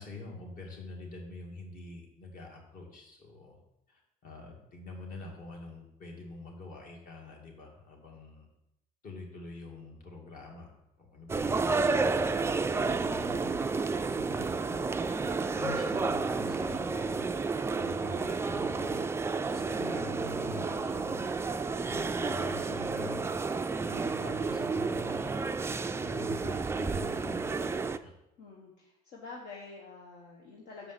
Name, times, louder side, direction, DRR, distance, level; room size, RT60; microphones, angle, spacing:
voice 1, 0.0-3.6 3.9-8.5 9.0-13.7 13.9-17.2 17.8-21.3 21.9-23.2 23.8-25.4 26.0-28.1, left 3 dB, 55° left, 0 dB, 2.3 m, -45 dB
sound 1, 11.3-28.0, right 4 dB, 15° right, 0.3 m, -31 dB
voice 2, 28.4-30.9, left 4 dB, 75° left, -2 dB, 1.4 m, -47 dB
7.0 x 5.2 x 5.9 m, 0.87 s
cardioid pair, 110°, 17 cm